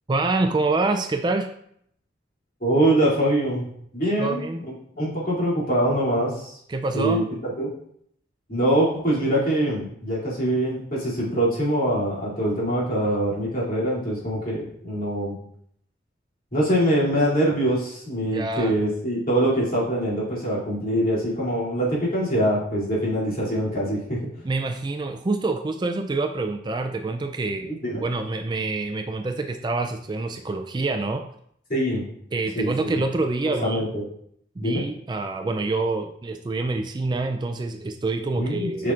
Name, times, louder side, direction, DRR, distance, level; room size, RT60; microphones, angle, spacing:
voice 1, 0.1-1.5 4.2-4.6 6.7-7.2 18.3-18.7 24.4-31.2 32.3-33.9 34.6-38.9, right 3 dB, 25° right, 5 dB, 0.3 m, -26 dB
voice 2, 2.6-3.7 3.9-4.4 4.9-6.6 6.9-7.7 8.5-15.3 16.5-24.2 27.6-28.0 31.7-32.0 32.5-33.0 33.6-34.0 34.6-34.8 38.4-38.9, right 1 dB, 50° left, -7 dB, 2.7 m, -23 dB
7.5 x 5.8 x 2.5 m, 0.69 s
head